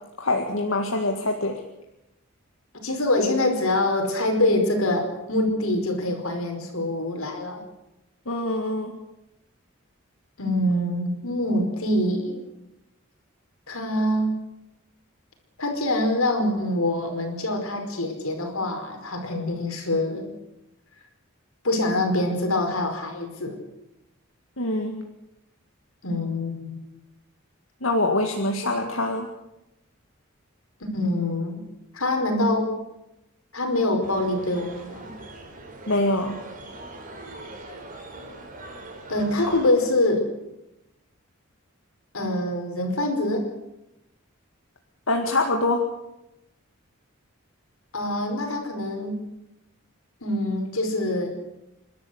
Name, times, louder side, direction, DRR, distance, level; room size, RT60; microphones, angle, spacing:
voice 1, 0.2-1.6 8.3-9.0 24.6-25.0 27.8-29.3 35.9-36.4 45.1-45.9, left 2 dB, 75° left, 3 dB, 2.0 m, -24 dB
voice 2, 2.8-7.6 10.4-12.4 13.7-14.4 15.6-20.3 21.6-23.6 26.0-26.8 30.8-31.6 31.9-32.7 33.5-35.1 39.1-40.2 42.1-43.5 47.9-49.2 50.2-51.3, left 1 dB, 90° left, 4 dB, 5.0 m, -25 dB
sound 1, 34.0-39.7, right 2 dB, 40° right, 4.4 m, -41 dB
29.0 x 13.0 x 8.0 m, 0.91 s
head